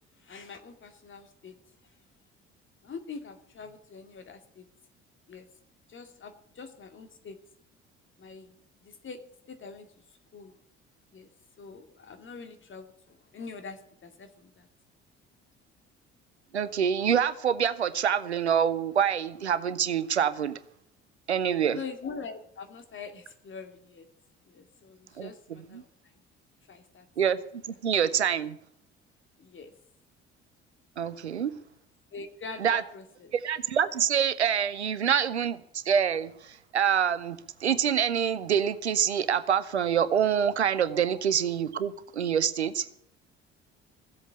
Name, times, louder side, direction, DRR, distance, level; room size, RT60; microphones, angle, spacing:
voice 1, 0.3-1.5 2.8-4.6 5.3-5.5 5.9-7.4 8.2-8.5 8.8-9.2 9.5-9.9 10.3-10.5 11.1-11.3 11.6-14.7 21.7-24.1 24.5-25.8 26.7-27.0 29.4-29.7 32.1-33.3 41.0-41.1, left 5 dB, 35° left, 7 dB, 2.4 m, -43 dB
voice 2, 16.5-20.6 21.3-21.8 25.2-25.8 27.2-27.4 27.8-28.6 31.0-31.5 32.6-32.8 33.3-42.9, right 8 dB, 85° right, 15 dB, 0.7 m, -26 dB
15.5 x 8.1 x 8.3 m, 0.70 s
figure-of-eight pair, 50°, 33 cm